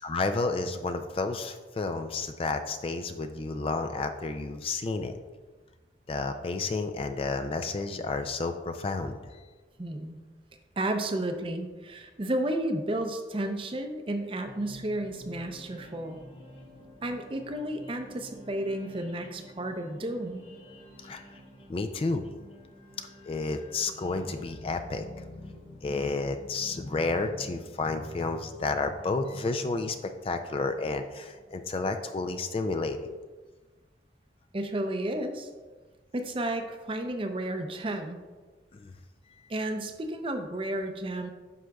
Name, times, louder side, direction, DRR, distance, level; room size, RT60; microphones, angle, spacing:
voice 1, 0.0-5.1 6.1-9.4 21.0-21.4 21.7-22.3 23.2-33.2 38.7-38.9, left 3 dB, 30° left, 8 dB, 0.3 m, -31 dB
voice 2, 9.8-10.2 10.8-16.2 17.0-20.4 34.5-35.5 36.1-38.2 39.5-41.3, right 1 dB, 30° right, 6 dB, 0.5 m, -32 dB
sound 1, 14.4-31.6, equal, 70° left, 1.9 m, -52 dB
9.7 x 6.1 x 2.3 m, 1.3 s
head